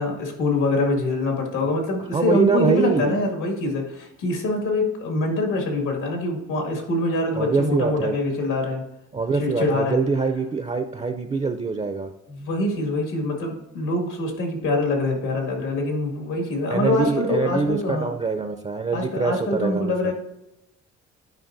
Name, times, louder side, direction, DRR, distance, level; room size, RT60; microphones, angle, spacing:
voice 1, 0.0-8.8 9.3-10.0 12.3-18.1 18.9-20.1, left 2 dB, 85° left, 2 dB, 2.1 m, -24 dB
voice 2, 2.1-3.2 7.3-8.2 9.1-12.1 16.7-20.1, right 4 dB, 20° right, 8 dB, 0.5 m, -24 dB
11.5 x 5.2 x 2.6 m, 0.89 s
cardioid pair, 90°, 30 cm